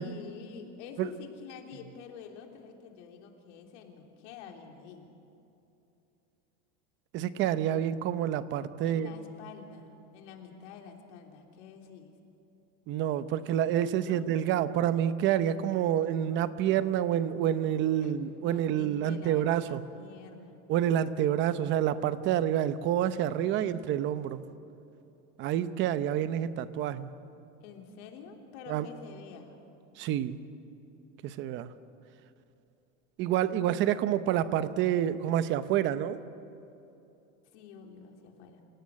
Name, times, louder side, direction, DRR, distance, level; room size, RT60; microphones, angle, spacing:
voice 1, 0.0-5.2 8.8-12.1 14.0-14.3 18.0-20.6 27.6-29.6 37.5-38.6, left 6 dB, 70° left, 3 dB, 3.4 m, -48 dB
voice 2, 7.1-9.1 12.9-19.8 20.7-24.4 25.4-27.1 28.7-28.9 30.0-30.4 31.2-31.7 33.2-36.2, right 10 dB, 30° right, 13 dB, 0.8 m, -28 dB
28.5 x 17.0 x 8.5 m, 2.8 s
supercardioid pair, 170°, 36 cm